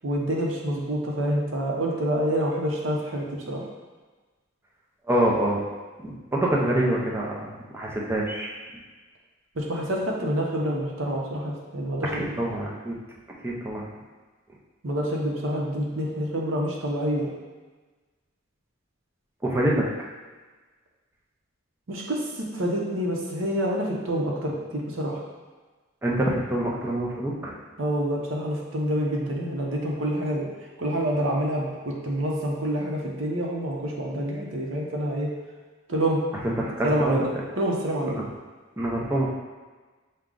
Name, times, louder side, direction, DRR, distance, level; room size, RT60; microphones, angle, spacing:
voice 1, 0.0-3.6 9.6-12.3 14.8-17.3 21.9-25.2 27.8-30.5 30.8-35.3 35.9-36.2 36.8-37.2 37.6-38.1, equal, 70° right, -2 dB, 0.8 m, -27 dB
voice 2, 5.1-5.6 6.0-8.6 12.2-13.0 13.4-13.9 19.4-19.9 26.0-27.5 36.3-37.2 38.1-38.2 38.8-39.3, right 1 dB, 10° right, -4 dB, 0.6 m, -26 dB
6.1 x 2.3 x 3.8 m, 1.3 s
head